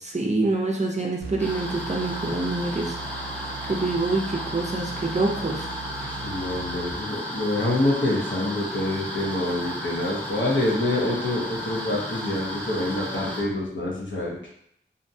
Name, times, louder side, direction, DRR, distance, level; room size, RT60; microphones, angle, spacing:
voice 1, 0.1-2.9 3.7-5.7, right 2 dB, 35° right, -1 dB, 0.5 m, -26 dB
sound 1, 1.2-7.3, right 5 dB, 85° right, 0.5 m, -39 dB
sound 2, 1.4-13.4, equal, 10° left, 0.8 m, -34 dB
voice 2, 6.0-14.5, left 1 dB, 65° left, -4 dB, 0.8 m, -26 dB
2.5 x 2.2 x 2.6 m, 0.71 s
wide cardioid pair, 40°, 21 cm